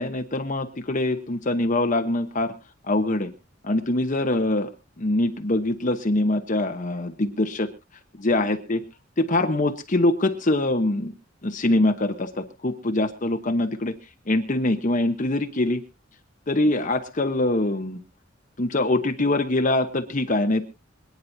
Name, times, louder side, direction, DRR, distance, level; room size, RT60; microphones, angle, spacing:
voice 1, 0.0-2.5 2.8-3.3 3.6-4.7 5.0-7.7 8.1-8.8 9.2-11.1 11.4-13.9 14.3-15.8 16.5-18.0 18.6-20.6, left 2 dB, 40° left, 6 dB, 1.0 m, -23 dB
26.0 x 9.5 x 2.7 m, 0.28 s
head